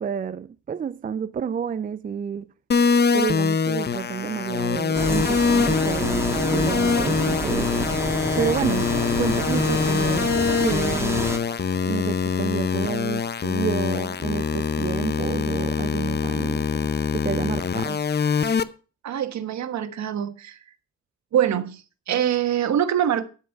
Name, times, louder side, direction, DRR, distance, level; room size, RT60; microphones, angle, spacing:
voice 1, 0.0-2.5 3.1-7.9 8.3-10.3 10.6-11.3 11.8-16.7 17.1-18.3, right 7 dB, 30° right, 0.4 m, -30 dB
sound 1, 2.7-18.6, left 6 dB, 35° left, 0.8 m, -24 dB
sound 2, 4.9-11.4, right 2 dB, 10° right, 1.9 m, -28 dB
voice 2, 19.0-20.6 21.3-23.2, right 10 dB, 65° right, 1.4 m, -24 dB
12.5 x 5.5 x 6.5 m
cardioid pair, 90°, 30 cm